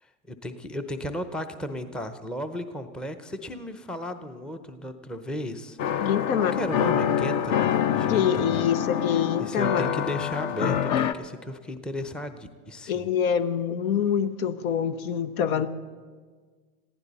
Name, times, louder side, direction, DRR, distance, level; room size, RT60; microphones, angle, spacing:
voice 1, 0.3-8.6 9.0-13.1, equal, ahead, 8 dB, 0.6 m, -35 dB
sound 1, 5.8-11.1, left 9 dB, 40° left, 0.8 m, -26 dB
voice 2, 6.0-6.6 8.0-9.9 12.9-15.7, left 8 dB, 70° left, 12 dB, 1.0 m, -25 dB
21.0 x 15.0 x 4.1 m, 1.5 s
hypercardioid pair, 110°, 44 cm